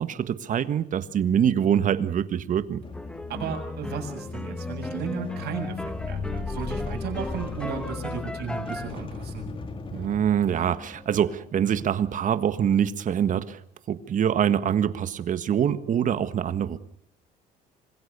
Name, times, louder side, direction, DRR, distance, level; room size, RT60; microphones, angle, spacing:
voice 1, 0.0-2.8 9.9-13.6 13.9-16.8, right 9 dB, 50° right, 12 dB, 1.6 m, -24 dB
sound 1, 2.6-11.4, left 4 dB, 30° left, 2.0 m, -36 dB
sound 2, 2.9-8.9, left 1 dB, 5° left, 1.4 m, -37 dB
voice 2, 3.3-9.5, right 6 dB, 75° right, 2 dB, 7.4 m, -34 dB
26.0 x 21.5 x 6.9 m, 0.65 s
cardioid pair, 110°, 17 cm